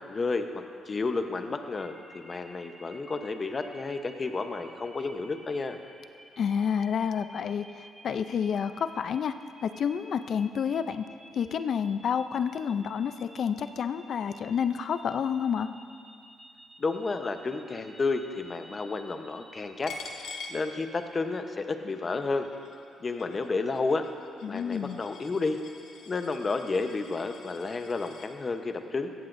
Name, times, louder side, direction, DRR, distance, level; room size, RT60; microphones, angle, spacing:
voice 1, 0.0-5.8 16.8-22.5 23.0-24.1 24.4-25.6 26.1-29.1, left 3 dB, 35° left, 6 dB, 0.9 m, -31 dB
sound 1, 1.8-19.6, right 1 dB, 15° right, 2.4 m, -53 dB
voice 2, 6.4-9.3 9.6-11.0 11.3-15.7 24.4-25.0, left 7 dB, 60° left, 11 dB, 0.5 m, -29 dB
Coin (dropping), 19.9-21.3 21.7-28.3, left 4 dB, 75° left, 1.2 m, -46 dB
17.5 x 15.0 x 2.6 m, 2.4 s
cardioid pair, 90°, 0 cm